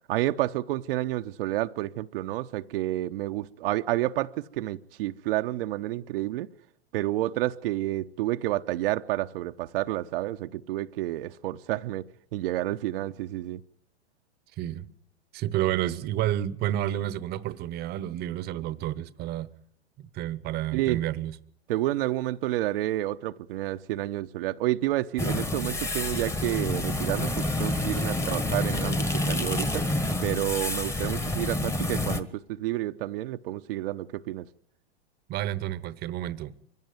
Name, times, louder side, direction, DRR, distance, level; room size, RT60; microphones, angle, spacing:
voice 1, 0.1-6.5 6.9-12.0 12.3-13.6 20.7-21.0 21.7-29.9 30.2-34.5, right 15 dB, 55° right, 0.8 m, -30 dB
voice 2, 14.6-14.9 15.3-19.5 20.0-21.4 35.3-36.5, right 13 dB, 30° right, 1.0 m, -30 dB
sound 1, 25.2-32.2, left 1 dB, 10° left, 1.3 m, -28 dB
23.5 x 16.5 x 9.5 m
hypercardioid pair, 130°, 33 cm